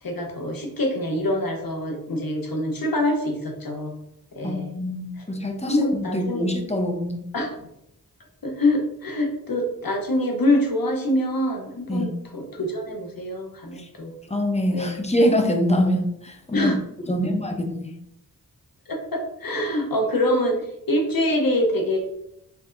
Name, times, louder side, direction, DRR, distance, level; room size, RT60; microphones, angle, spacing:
voice 1, 0.0-3.9 4.3-4.7 5.2-5.3 5.6-6.5 7.3-7.7 8.4-14.1 14.7-15.0 16.5-16.8 17.0-17.3 18.9-22.0, left 1 dB, 65° left, 2 dB, 1.0 m, -25 dB
voice 2, 4.4-7.2 11.9-12.1 13.8-13.9 14.3-16.7 17.1-17.9, equal, 15° left, 4 dB, 0.8 m, -24 dB
4.4 x 4.1 x 2.6 m, 0.79 s
wide cardioid pair, 65°, 38 cm